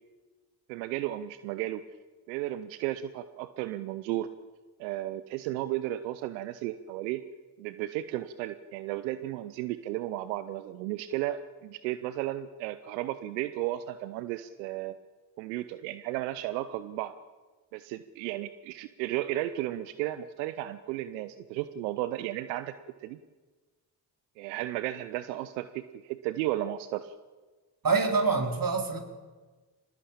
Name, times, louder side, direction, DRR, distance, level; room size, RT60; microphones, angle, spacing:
voice 1, 0.7-1.8 2.3-4.3 4.8-7.2 7.6-15.0 15.4-17.1 17.7-22.7 23.0-23.2 24.4-27.1, right 14 dB, 85° right, 13 dB, 0.8 m, -34 dB
voice 2, 27.8-29.0, right 4 dB, 40° right, 4 dB, 4.8 m, -25 dB
24.5 x 20.0 x 8.7 m, 1.3 s
hypercardioid pair, 40°, 50 cm